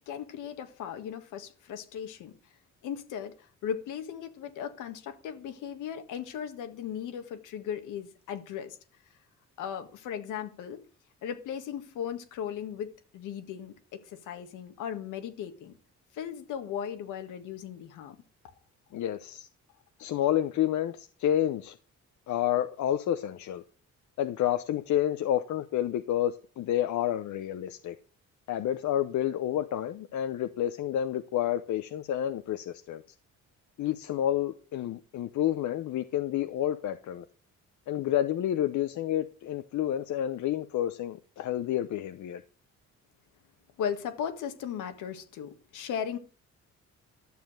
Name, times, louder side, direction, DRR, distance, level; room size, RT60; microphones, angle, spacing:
voice 1, 0.1-2.4 2.8-8.8 9.6-10.8 11.2-15.8 16.1-18.2 43.8-46.2, left 8 dB, 90° left, 1.7 m, -37 dB
voice 2, 18.9-19.5 20.0-21.8 22.3-23.6 24.2-27.9 28.5-33.0 33.8-37.2 37.9-42.4, left 11 dB, 70° left, 0.8 m, -29 dB
12.0 x 7.0 x 6.3 m
cardioid pair, 90°, 30 cm